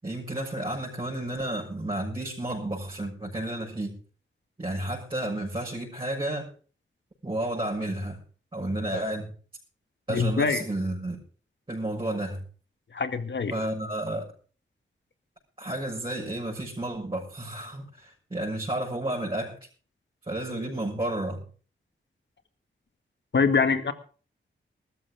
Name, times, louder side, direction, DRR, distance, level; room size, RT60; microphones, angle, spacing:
voice 1, 0.0-4.0 4.6-6.5 7.2-8.2 8.5-9.3 10.1-11.2 11.7-12.4 13.5-14.3 15.6-19.6 20.3-21.4, right 1 dB, 25° right, -4 dB, 6.6 m, -31 dB
voice 2, 10.1-10.6 12.9-13.5 23.3-23.9, left 5 dB, 60° left, 8 dB, 2.1 m, -24 dB
20.5 x 13.5 x 3.7 m, 0.40 s
wide cardioid pair, 100°, 21 cm